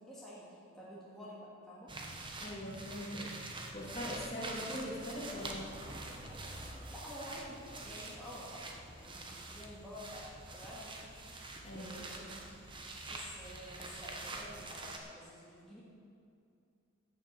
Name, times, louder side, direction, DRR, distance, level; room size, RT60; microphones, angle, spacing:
voice 1, 0.0-1.9 6.9-8.7 9.0-11.2 11.7-12.4 12.7-15.8, equal, ahead, -8 dB, 2.1 m, -50 dB
sound 1, 1.9-15.0, right 2 dB, 20° right, 1.1 m, -46 dB
voice 2, 2.4-6.0 11.6-12.0 12.2-12.4, left 1 dB, 30° left, -5 dB, 2.7 m, -42 dB
14.5 x 7.4 x 7.8 m, 2.4 s
head